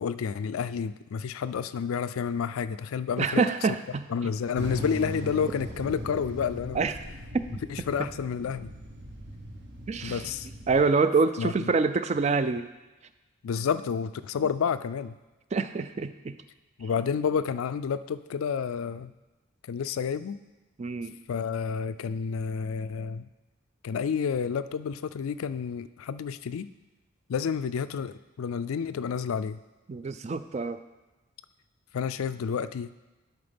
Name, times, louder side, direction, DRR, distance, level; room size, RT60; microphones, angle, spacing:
voice 1, 0.0-3.5 4.1-6.9 7.7-8.7 10.0-10.5 11.4-11.7 13.4-15.2 16.8-19.1 19.7-20.4 21.3-23.3 23.8-26.7 27.3-29.6 31.9-32.9, left 6 dB, 90° left, 13 dB, 0.4 m, -30 dB
voice 2, 3.2-4.1 6.8-6.9 7.3-7.4 9.9-10.2 10.7-12.7 15.5-16.4 20.8-21.2 29.9-30.8, right 4 dB, 35° right, 11 dB, 0.3 m, -26 dB
sound 1, 4.5-10.8, equal, 55° right, 1.1 m, -39 dB
11.0 x 4.1 x 5.2 m, 1.1 s
head